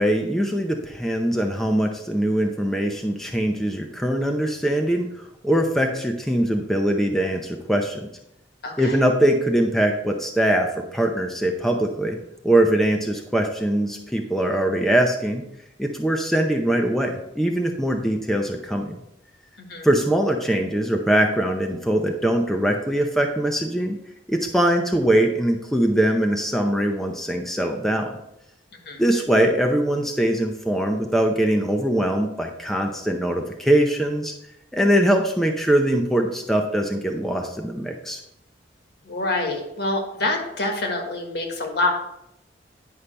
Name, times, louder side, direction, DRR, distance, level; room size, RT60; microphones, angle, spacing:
voice 1, 0.0-5.1 5.4-8.1 8.8-12.2 12.4-15.4 15.8-19.0 19.8-24.0 24.3-28.2 29.0-34.3 34.7-38.2, right 1 dB, ahead, 2 dB, 0.6 m, -22 dB
voice 2, 8.6-9.0 19.7-19.9 28.8-29.0 39.0-41.9, left 2 dB, 65° left, 2 dB, 1.5 m, -26 dB
9.8 x 5.5 x 3.3 m, 0.82 s
head